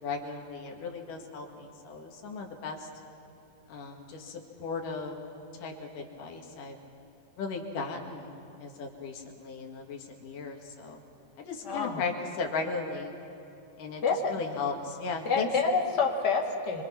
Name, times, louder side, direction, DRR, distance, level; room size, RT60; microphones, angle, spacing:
voice 1, 0.0-2.9 3.7-5.2 5.6-6.8 7.4-11.0 11.4-13.1 13.8-14.0 14.3-15.5, left 4 dB, 65° left, 1 dB, 3.5 m, -36 dB
voice 2, 11.6-12.0 14.0-14.4 15.2-16.8, left 4 dB, 35° left, 1 dB, 2.2 m, -27 dB
26.0 x 25.0 x 5.9 m, 2.9 s
omnidirectional pair, 4.1 m